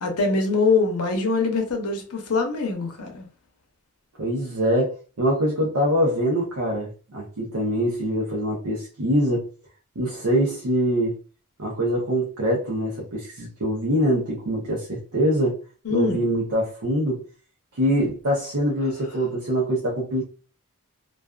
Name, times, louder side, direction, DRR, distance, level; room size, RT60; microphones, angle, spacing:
voice 1, 0.0-3.3 15.8-16.2, left 4 dB, 80° left, 0.7 m, -23 dB
voice 2, 4.2-9.5 10.0-11.1 11.6-15.6 15.9-17.2 17.7-20.2, equal, 80° right, 0.7 m, -24 dB
2.4 x 2.3 x 2.3 m
head